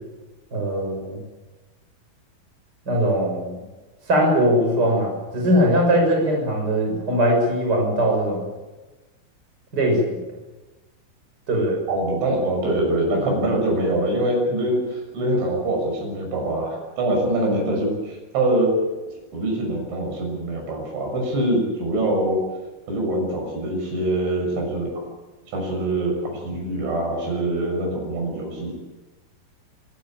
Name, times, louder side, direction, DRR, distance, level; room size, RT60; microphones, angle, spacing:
voice 1, 0.5-1.2 2.9-3.6 4.1-8.5 9.7-10.2 11.5-11.8, equal, 20° right, 1 dB, 6.6 m, -20 dB
voice 2, 11.9-18.8 19.3-22.4 22.9-25.1 25.5-28.7, right 1 dB, 85° right, 1 dB, 8.9 m, -24 dB
25.5 x 16.0 x 9.0 m, 1.1 s
omnidirectional pair, 5.2 m